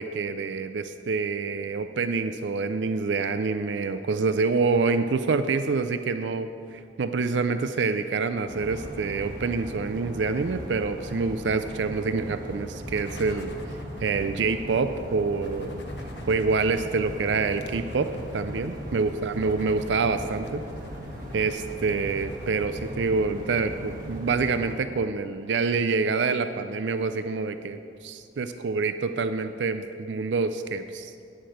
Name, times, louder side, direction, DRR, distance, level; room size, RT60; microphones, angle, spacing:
voice 1, 0.0-13.5 14.0-15.8 16.3-20.6 21.3-31.1, right 4 dB, 75° right, 10 dB, 0.5 m, -27 dB
sound 1, 8.5-24.7, equal, 50° right, 2.0 m, -38 dB
sound 2, 12.9-22.6, left 1 dB, 65° left, 1.0 m, -46 dB
9.2 x 8.9 x 6.5 m, 2.3 s
head